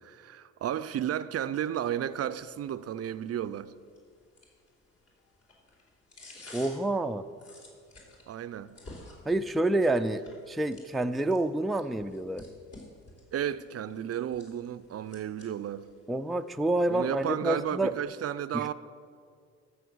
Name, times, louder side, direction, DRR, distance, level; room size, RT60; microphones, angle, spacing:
voice 1, 0.0-3.7 8.3-8.8 13.3-15.9 16.9-18.7, right 10 dB, 50° right, 0.5 m, -33 dB
sound 1, 2.1-18.0, left 2 dB, 50° left, 3.5 m, -54 dB
voice 2, 6.5-7.2 9.3-12.4 16.1-17.9 18.5-18.7, right 2 dB, ahead, 0.4 m, -28 dB
14.0 x 6.2 x 6.3 m
supercardioid pair, 70°, 31 cm